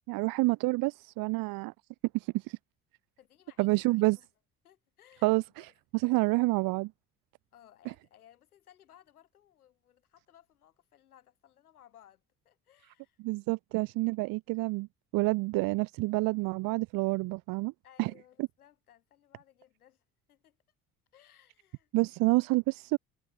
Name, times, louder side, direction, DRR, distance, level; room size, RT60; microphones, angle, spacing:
voice 1, 0.1-1.7 2.1-2.6 3.6-4.2 5.2-6.9 13.2-14.9 15.1-17.7 18.0-18.1 21.9-23.0, right 23 dB, 50° right, 0.5 m, -28 dB
voice 2, 3.2-4.3 4.6-5.7 6.2-6.5 7.5-13.2 17.8-20.6 21.1-21.9, left 11 dB, 80° left, 7.2 m, -61 dB
figure-of-eight pair, 50°, 43 cm